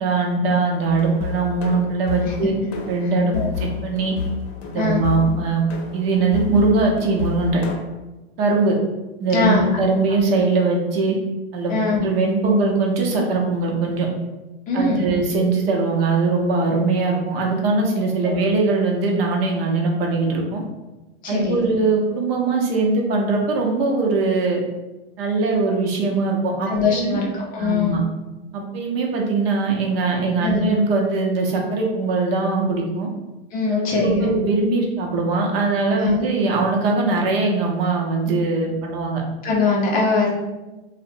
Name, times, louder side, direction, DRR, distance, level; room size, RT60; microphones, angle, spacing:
voice 1, 0.0-2.5 2.9-3.3 3.6-4.1 4.7-5.6 5.9-7.6 8.4-8.8 9.2-11.2 11.5-11.7 12.0-14.1 14.7-20.6 21.3-24.6 25.2-27.2 27.6-28.0 28.5-33.1 33.7-39.2, right 3 dB, 65° right, 0 dB, 0.7 m, -21 dB
sound 1, 0.9-7.8, left 6 dB, 70° left, 0.6 m, -30 dB
voice 2, 11.7-12.0 14.7-15.1 18.2-18.4 21.2-21.6 26.7-27.3 27.5-28.0 30.4-30.6 33.5-34.3 36.0-36.1 39.4-40.3, left 4 dB, 25° left, -2 dB, 0.5 m, -21 dB
2.4 x 2.0 x 2.6 m, 1.1 s
hypercardioid pair, 125°, 32 cm